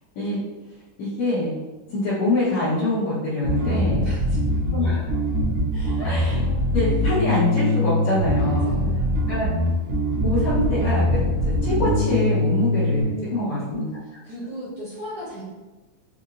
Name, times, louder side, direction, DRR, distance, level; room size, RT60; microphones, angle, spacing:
voice 1, 1.0-1.5 1.9-4.0 4.7-5.1 6.0-6.4 6.7-8.7 9.3-9.5 10.2-11.2 11.6-13.8, left 1 dB, 65° left, -13 dB, 2.2 m, -24 dB
Bass guitar, 3.4-13.0, left 1 dB, 85° right, 1.3 m, -22 dB
voice 2, 3.6-4.4 5.7-6.0 8.4-9.4 13.0-13.7 14.2-15.5, right 1 dB, 55° right, -10 dB, 1.6 m, -36 dB
5.5 x 2.6 x 2.5 m, 1.2 s
omnidirectional pair, 3.7 m